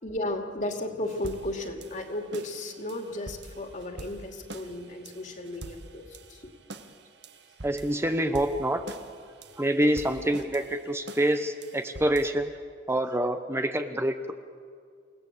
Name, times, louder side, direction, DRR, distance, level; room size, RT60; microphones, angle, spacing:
voice 1, 0.0-6.5 9.4-9.5, left 1 dB, 45° left, 4 dB, 2.6 m, -34 dB
sound 1, 1.0-12.3, right 2 dB, 65° right, 1.5 m, -46 dB
voice 2, 7.6-8.8 9.6-12.5 12.9-14.3, right 1 dB, 15° right, 8 dB, 0.8 m, -26 dB
29.0 x 17.5 x 8.4 m, 2.1 s
head